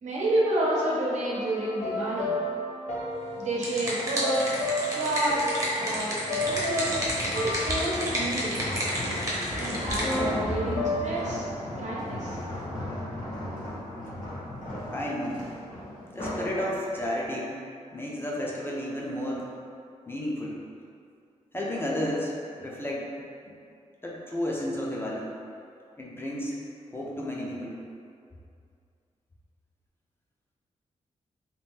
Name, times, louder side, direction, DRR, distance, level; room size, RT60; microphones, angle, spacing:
voice 1, 0.0-2.3 3.4-4.4 4.9-6.9 7.3-8.5 9.6-11.4 11.8-12.4, right 1 dB, 70° right, -6 dB, 0.8 m, -29 dB
sound 1, 1.2-9.2 10.0-11.0, left 2 dB, 60° left, 0.7 m, -34 dB
sound 2, 3.3-10.2, equal, 25° right, 0.8 m, -31 dB
sound 3, 6.3-16.5 17.0-17.3, left 1 dB, 90° left, 1.2 m, -36 dB
voice 2, 14.9-15.5 16.1-17.6 17.9-19.4 20.1-20.6 21.5-23.1 23.5-23.6 24.0-25.3 26.0-26.6 26.9-27.8, left 1 dB, 15° left, -4 dB, 0.4 m, -32 dB
2.8 x 2.5 x 3.5 m, 2.4 s
wide cardioid pair, 115°, 13 cm